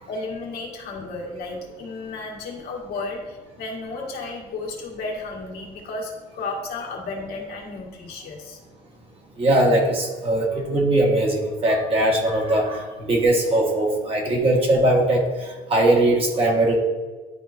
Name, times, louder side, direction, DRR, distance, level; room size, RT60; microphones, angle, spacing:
voice 1, 0.1-8.6, left 3 dB, 70° left, -1 dB, 1.7 m, -33 dB
voice 2, 9.4-15.2 15.7-16.7, right 1 dB, 35° right, 0 dB, 1.5 m, -20 dB
11.0 x 3.8 x 2.7 m, 1.3 s
cardioid pair, 110°, 17 cm